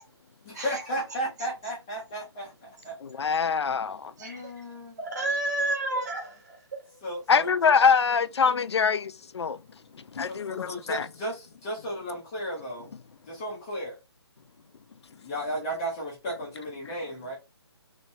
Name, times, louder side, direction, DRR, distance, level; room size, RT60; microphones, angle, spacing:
voice 1, 0.4-3.4 4.2-5.0 7.0-7.5 10.3-12.9 13.3-13.9 15.1-17.4, right 1 dB, 10° left, 0.5 m, -34 dB
voice 2, 3.0-4.1 7.3-9.6 9.9-11.1, left 6 dB, 70° left, 0.4 m, -24 dB
voice 3, 4.2-4.5 5.0-6.6, right 2 dB, 35° right, 1.4 m, -30 dB
3.1 x 3.1 x 2.7 m
hypercardioid pair, 170°, 15 cm